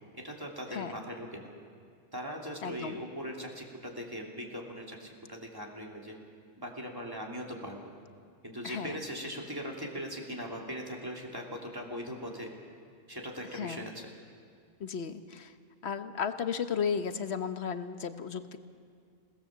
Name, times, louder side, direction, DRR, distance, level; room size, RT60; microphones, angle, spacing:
voice 1, 0.1-1.5 2.1-6.2 6.6-7.8 8.4-12.5 13.1-14.1, equal, 20° right, -1 dB, 3.0 m, -40 dB
voice 2, 2.6-3.0 8.6-9.0 13.5-13.8 14.8-15.5 15.8-18.6, left 6 dB, 65° left, 9 dB, 1.2 m, -34 dB
27.5 x 17.5 x 7.5 m, 2.2 s
omnidirectional pair, 1.2 m